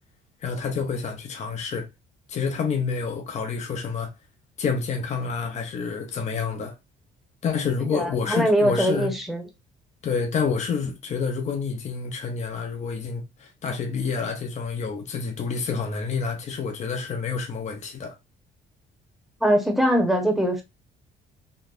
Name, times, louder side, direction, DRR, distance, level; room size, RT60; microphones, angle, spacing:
voice 1, 0.4-1.9 2.3-4.1 4.6-6.7 7.4-9.1 10.0-18.1, left 5 dB, 45° left, 0.8 m, -28 dB
voice 2, 7.9-9.4 19.4-20.6, equal, ahead, 1.0 m, -22 dB
3.8 x 2.4 x 2.5 m
cardioid pair, 110°, 17 cm